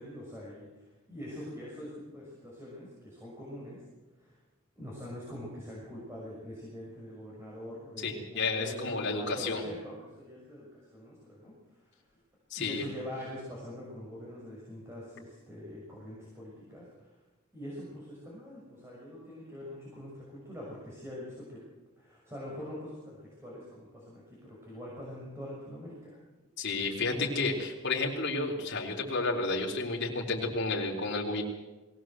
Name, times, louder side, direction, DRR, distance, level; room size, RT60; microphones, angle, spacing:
voice 1, 0.0-3.8 4.2-4.4 4.8-11.5 12.5-17.1 17.5-21.6 22.0-26.2 27.1-27.3, left 1 dB, 15° right, -5 dB, 6.1 m, -44 dB
voice 2, 8.0-9.6 12.5-12.8 26.6-31.4, left 3 dB, 55° left, -1 dB, 4.0 m, -31 dB
22.0 x 18.0 x 7.8 m, 1.2 s
head